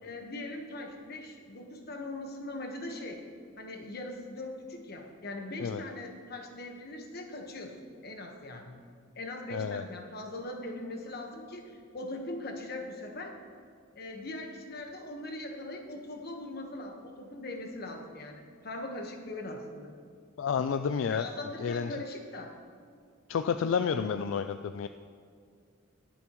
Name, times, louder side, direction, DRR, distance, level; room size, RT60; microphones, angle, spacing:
voice 1, 0.0-3.2 3.6-8.8 9.1-13.3 13.9-19.9 21.1-22.5, left 2 dB, 50° left, 2 dB, 1.3 m, -41 dB
voice 2, 9.5-9.8 20.4-21.3 21.6-21.9 23.3-24.9, left 6 dB, 75° left, 9 dB, 0.3 m, -30 dB
21.0 x 7.1 x 3.1 m, 2.2 s
head